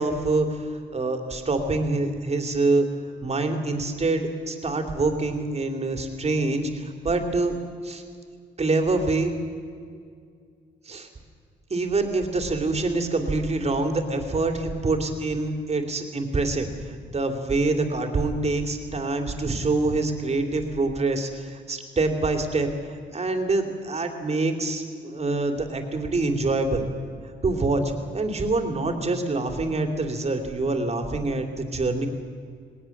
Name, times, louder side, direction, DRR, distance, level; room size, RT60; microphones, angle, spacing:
voice 1, 0.0-2.9 3.2-7.6 7.8-8.0 8.6-9.3 10.8-11.1 11.7-26.8 27.4-32.1, right 3 dB, 30° right, 5 dB, 2.9 m, -25 dB
19.5 x 19.0 x 7.3 m, 2.2 s
cardioid pair, 90°, 20 cm